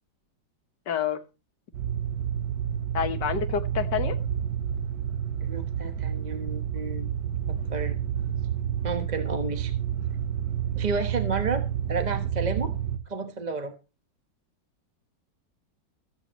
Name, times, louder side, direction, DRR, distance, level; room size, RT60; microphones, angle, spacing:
voice 1, 0.9-1.2 2.9-4.2, left 7 dB, 70° left, 10 dB, 1.8 m, -28 dB
sound 1, 1.7-13.0, right 9 dB, 70° right, 1.9 m, -29 dB
voice 2, 5.4-7.1 7.5-8.0 8.8-9.7 10.7-12.7 13.1-13.7, right 4 dB, 25° right, 6 dB, 1.1 m, -31 dB
22.5 x 8.9 x 3.1 m, 0.31 s
omnidirectional pair, 2.0 m